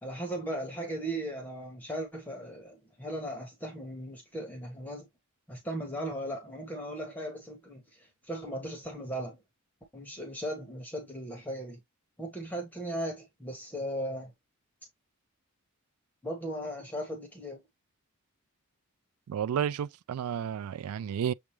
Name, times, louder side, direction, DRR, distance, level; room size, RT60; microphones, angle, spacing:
voice 1, 0.0-5.1 5.5-9.4 9.9-11.8 12.2-14.3 16.2-17.6, right 1 dB, 10° left, 1.1 m, -37 dB
voice 2, 19.3-21.3, right 8 dB, 80° right, 0.3 m, -31 dB
7.0 x 2.4 x 3.1 m
head